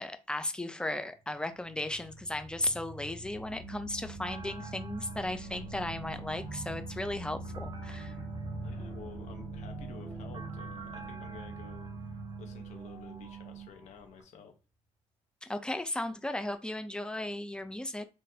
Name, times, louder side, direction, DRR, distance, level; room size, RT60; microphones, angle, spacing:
voice 1, 0.0-8.1 15.4-18.1, left 1 dB, 5° left, 0.5 m, -35 dB
sound 1, 1.3-14.1, equal, 55° left, 1.6 m, -44 dB
sound 2, 3.6-13.7, right 12 dB, 60° right, 0.5 m, -47 dB
sound 3, 4.2-14.2, right 3 dB, 40° right, 0.9 m, -52 dB
voice 2, 8.6-12.1 12.4-14.5, left 5 dB, 75° left, 1.1 m, -51 dB
3.8 x 3.1 x 2.8 m
cardioid pair, 90°, 12 cm